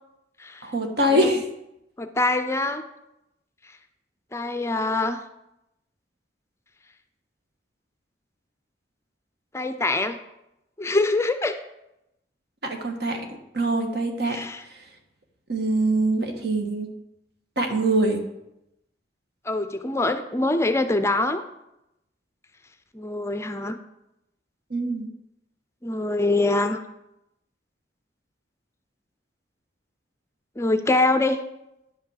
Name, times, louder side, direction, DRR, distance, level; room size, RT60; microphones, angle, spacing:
voice 1, 0.6-1.4 12.6-13.2 13.5-14.4 15.5-16.9 17.6-18.2 24.7-25.1, right 1 dB, 65° right, 4 dB, 1.5 m, -23 dB
voice 2, 2.0-2.8 4.3-5.2 9.5-10.2 10.8-11.6 14.3-14.6 19.5-21.4 22.9-23.8 25.8-26.8 30.6-31.4, left 2 dB, 15° left, 9 dB, 0.5 m, -24 dB
10.0 x 5.7 x 6.5 m, 0.87 s
head